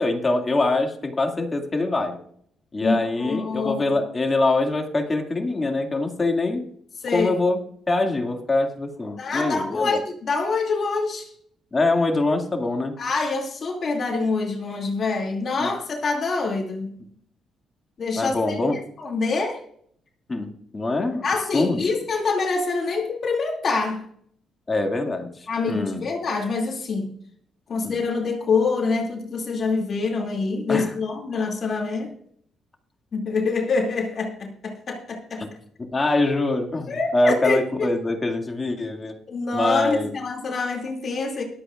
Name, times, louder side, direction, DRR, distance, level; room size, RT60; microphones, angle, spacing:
voice 1, 0.0-2.2 2.7-6.6 7.1-7.6 7.9-10.0 11.7-13.0 15.6-15.7 18.2-18.8 20.3-21.2 21.5-21.9 24.7-26.1 27.8-28.0 30.7-30.9 35.9-39.2 39.5-40.1, left 2 dB, 25° left, 3 dB, 2.3 m, -24 dB
voice 2, 2.8-4.0 7.0-7.3 9.2-11.3 13.0-16.9 18.0-19.6 21.2-24.1 25.5-27.2 27.7-32.1 33.1-35.4 36.9-38.0 39.3-41.4, left 4 dB, 50° left, 1 dB, 2.6 m, -26 dB
23.0 x 8.5 x 2.5 m, 0.65 s
cardioid pair, 95°, 0 cm